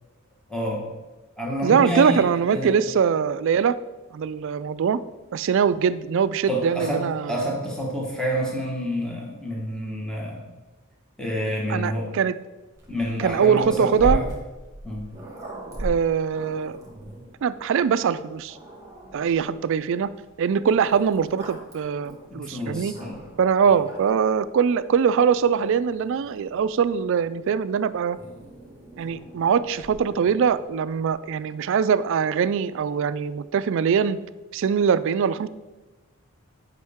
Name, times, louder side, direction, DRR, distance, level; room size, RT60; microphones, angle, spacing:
voice 1, 0.5-0.8 1.4-2.7 6.5-10.4 11.2-12.1 12.9-14.3 14.8-15.1 22.3-23.2 23.7-23.8, equal, 5° left, -4 dB, 1.4 m, -28 dB
voice 2, 1.6-3.8 4.1-5.0 5.3-7.4 11.7-12.3 13.2-14.2 15.8-16.8 17.4-18.6 19.1-20.1 20.4-22.9 23.4-28.2 29.0-34.2 34.5-35.5, right 7 dB, 65° right, 15 dB, 0.3 m, -22 dB
Growling, 12.7-17.3 18.0-18.1 18.5-19.6 20.6-23.4 23.8-24.3 25.2-27.0 28.1-30.7, right 1 dB, 15° right, 1.8 m, -37 dB
9.3 x 5.3 x 3.5 m, 1.1 s
head